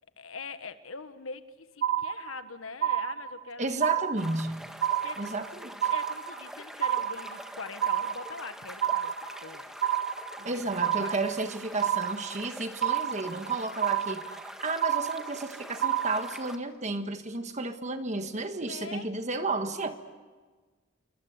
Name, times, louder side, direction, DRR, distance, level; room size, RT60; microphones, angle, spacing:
voice 1, 0.2-3.8 5.0-5.3 5.9-9.1 9.4-9.6 10.4-11.1 13.4-13.6 18.3-19.1, left 4 dB, 85° left, 10 dB, 1.4 m, -43 dB
sound 1, 1.8-2.5 2.8-3.5 3.8-4.5 4.8-5.5 5.8-6.5 6.8-7.5 7.8-8.5 8.8-9.5 9.8-10.5 10.8-11.5 11.8-12.5 12.8-13.5 13.8-14.5 14.8-15.5 15.8-16.5, right 10 dB, 60° right, 1.1 m, -29 dB
voice 2, 3.6-4.6 5.2-5.7 10.4-14.3 14.6-20.0, right 3 dB, 35° right, 8 dB, 1.5 m, -32 dB
sound 2, 4.2-16.6, equal, 5° right, 1.7 m, -45 dB
27.5 x 23.5 x 8.2 m, 1.4 s
head